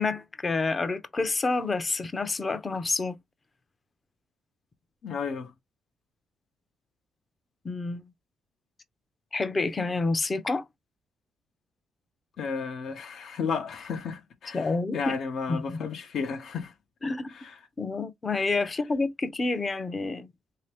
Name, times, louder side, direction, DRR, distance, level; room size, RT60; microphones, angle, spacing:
voice 1, 0.0-3.2 7.6-8.0 9.3-10.6 14.5-15.1 15.5-15.8 17.0-17.3 17.8-20.3, left 3 dB, 30° left, 0.7 m, -28 dB
voice 2, 5.0-5.5 12.4-16.7 17.3-17.6, left 5 dB, 65° left, 0.8 m, -33 dB
3.3 x 2.8 x 3.3 m
cardioid pair, 90°, 0 cm